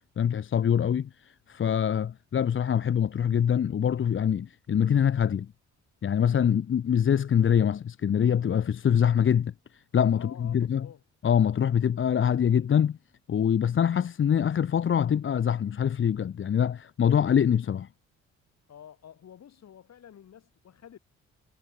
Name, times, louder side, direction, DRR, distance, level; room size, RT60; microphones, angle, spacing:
voice 1, 0.2-5.5 6.0-10.9 11.2-13.0 13.3-17.9, left 8 dB, 40° left, 0.9 m, -24 dB
voice 2, 10.1-11.0 18.7-21.0, left 9 dB, 60° left, 4.5 m, -49 dB
cardioid pair, 90°, 30 cm